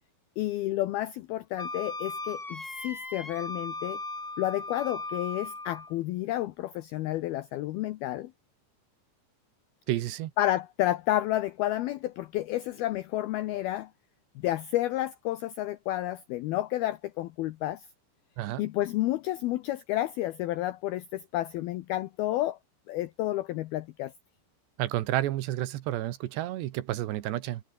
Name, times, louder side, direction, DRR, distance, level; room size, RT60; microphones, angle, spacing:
voice 1, 0.4-4.0 4.4-8.3 10.4-13.9 14.4-17.9 18.6-22.6 22.9-24.1, left 15 dB, 85° left, 2.2 m, -30 dB
Wind instrument woodwind instrument, 1.6-5.9, left 2 dB, 50° left, 0.4 m, -37 dB
voice 2, 9.9-10.3 18.4-18.6 24.8-27.6, right 14 dB, 70° right, 3.2 m, -30 dB
omnidirectional pair, 5.4 m